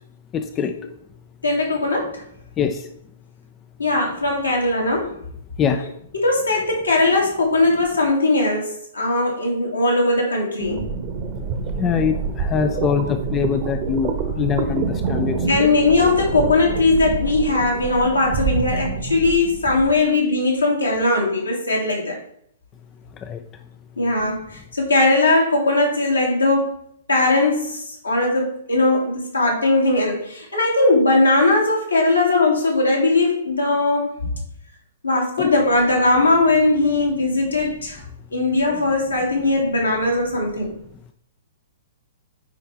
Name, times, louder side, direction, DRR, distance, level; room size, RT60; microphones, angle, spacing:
voice 1, 0.3-0.7 2.6-2.8 5.6-5.8 11.8-14.1 14.4-15.4 23.2-23.4 35.4-35.5 38.7-38.8, left 7 dB, 20° left, 7 dB, 0.5 m, -23 dB
voice 2, 1.4-2.2 3.8-5.2 5.8-10.9 12.7-13.1 14.6-14.7 15.3-22.2 24.0-26.7 27.1-34.4 35.0-38.0 38.3-40.8, left 2 dB, 80° left, -1 dB, 2.6 m, -19 dB
sound 1, 10.6-20.0, right 4 dB, 35° right, 1.2 m, -27 dB
10.0 x 4.5 x 3.3 m, 0.69 s
figure-of-eight pair, 110°, 0 cm